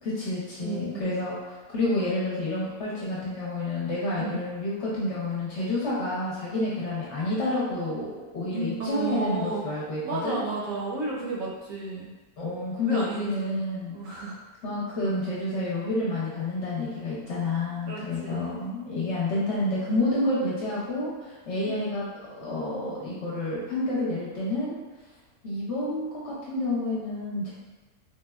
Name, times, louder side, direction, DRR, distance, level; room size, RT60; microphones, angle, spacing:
voice 1, 0.0-10.4 12.4-14.0 14.6-22.1 22.4-24.8 25.4-27.5, left 2 dB, 60° left, -7 dB, 0.9 m, -29 dB
voice 2, 0.6-1.1 4.2-4.4 8.5-9.6 10.0-12.1 12.8-13.6 13.9-14.4 17.9-18.6 21.6-22.0, right 2 dB, 70° right, -3 dB, 0.9 m, -33 dB
3.4 x 2.1 x 2.3 m, 1.3 s
omnidirectional pair, 1.6 m